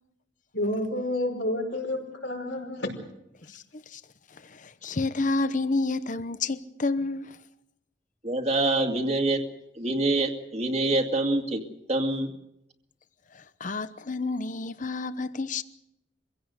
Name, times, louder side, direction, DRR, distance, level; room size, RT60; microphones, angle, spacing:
voice 1, 0.5-2.9, left 1 dB, 85° left, 5.4 m, -29 dB
voice 2, 3.4-4.0 4.3-7.4 13.3-15.6, left 3 dB, 45° left, 0.9 m, -30 dB
voice 3, 8.2-9.4 9.8-11.6 11.9-12.3, right 2 dB, 35° right, 2.3 m, -25 dB
24.5 x 16.5 x 8.1 m
head